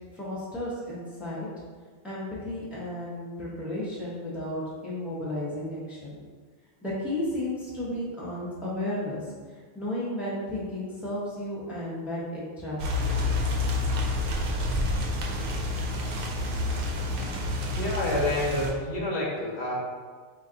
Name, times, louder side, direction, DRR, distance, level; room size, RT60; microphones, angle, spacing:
voice 1, 0.1-1.5 2.0-6.2 6.8-13.2, left 1 dB, ahead, -7 dB, 0.6 m, -33 dB
sound 1, 12.8-18.7, left 2 dB, 65° right, 0.7 m, -28 dB
voice 2, 17.7-19.7, left 1 dB, 80° left, -3 dB, 1.0 m, -28 dB
3.4 x 2.3 x 3.7 m, 1.5 s
omnidirectional pair, 1.1 m